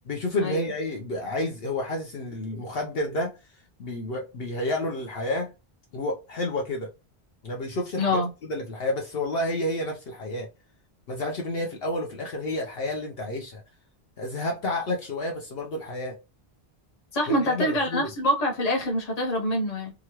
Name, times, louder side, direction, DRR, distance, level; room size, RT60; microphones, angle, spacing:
voice 1, 0.0-3.3 3.8-5.5 5.9-6.9 7.4-10.5 11.1-13.6 14.2-16.1 17.3-18.1, left 1 dB, 65° left, 0.9 m, -30 dB
voice 2, 8.0-8.3 17.1-19.9, left 1 dB, 40° left, 0.9 m, -25 dB
2.9 x 2.4 x 2.9 m
omnidirectional pair, 1.1 m